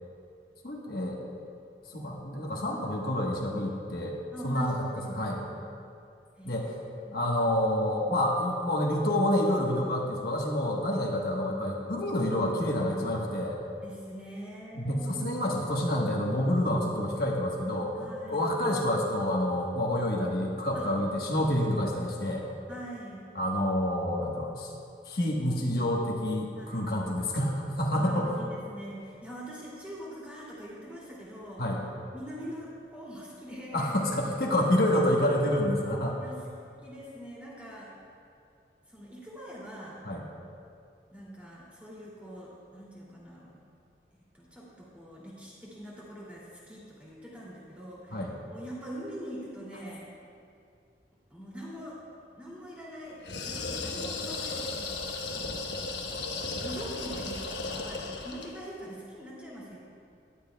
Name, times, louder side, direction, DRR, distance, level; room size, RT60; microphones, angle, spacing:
voice 1, 0.6-1.2 1.9-4.2 4.4-5.4 6.4-6.7 7.1-13.6 14.7-17.9 18.3-22.4 23.3-24.7 25.1-28.4 31.6-31.8 33.7-36.2 40.0-40.2 48.1-48.3, left 1 dB, 60° left, -2 dB, 1.2 m, -28 dB
voice 2, 4.3-5.8 6.4-7.2 13.8-15.4 17.9-18.5 20.7-20.9 22.7-23.2 26.6-26.9 27.9-31.6 32.1-34.0 34.9-35.0 36.2-36.4 36.8-37.9 38.9-40.0 41.1-43.5 44.3-50.1 51.3-52.0 52.4-55.0 55.3-55.6 56.6-59.8, right 1 dB, 10° right, -7 dB, 2.5 m, -43 dB
sound 1, 53.2-58.6, left 3 dB, 85° left, 1.1 m, -35 dB
17.0 x 11.5 x 2.3 m, 2.4 s
head